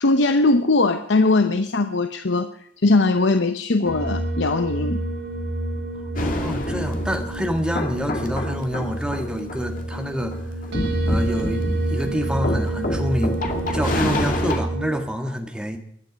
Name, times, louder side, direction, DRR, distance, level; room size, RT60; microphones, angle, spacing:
voice 1, 0.0-2.5 2.8-5.0 14.0-14.1, left 2 dB, 80° left, 9 dB, 0.8 m, -20 dB
sound 1, 3.9-15.0, right 1 dB, 85° right, 5.2 m, -28 dB
sound 2, 6.2-14.6, left 1 dB, 45° left, 2.3 m, -28 dB
voice 2, 6.2-10.3 11.1-13.4 13.7-15.8, equal, 5° right, 4 dB, 1.8 m, -27 dB
23.5 x 10.5 x 5.2 m, 0.69 s
head